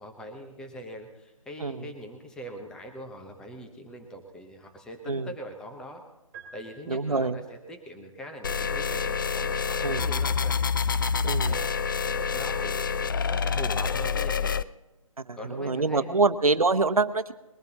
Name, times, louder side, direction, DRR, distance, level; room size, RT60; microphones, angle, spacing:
voice 1, 0.0-6.0 6.5-10.6 11.4-14.6 15.4-16.2, equal, 5° left, 4 dB, 0.9 m, -42 dB
sound 1, 6.3-7.6, right 6 dB, 20° right, 3.0 m, -49 dB
voice 2, 6.9-7.4 9.8-10.1 11.2-11.6 15.3-17.3, right 3 dB, 90° right, 10 dB, 1.0 m, -25 dB
sound 2, 8.4-14.6, left 6 dB, 40° left, 0.3 m, -27 dB
21.5 x 14.5 x 2.9 m, 1.0 s
figure-of-eight pair, 150°, 18 cm